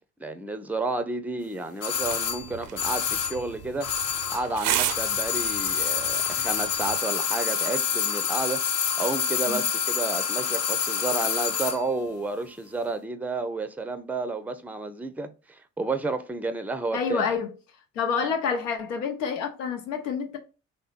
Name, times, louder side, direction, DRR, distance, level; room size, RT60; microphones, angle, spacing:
voice 1, 0.2-3.9 4.3-8.6 9.0-17.3, right 3 dB, 5° right, 0.6 m, -31 dB
sound 1, 1.8-4.6 4.8-11.8 12.1-12.2, left 7 dB, 40° left, 0.9 m, -27 dB
sound 2, 2.0-7.0, right 11 dB, 50° right, 0.6 m, -34 dB
voice 2, 16.9-17.5 17.9-20.4, left 6 dB, 75° left, 0.9 m, -28 dB
3.5 x 3.3 x 4.3 m
figure-of-eight pair, 45°, 38 cm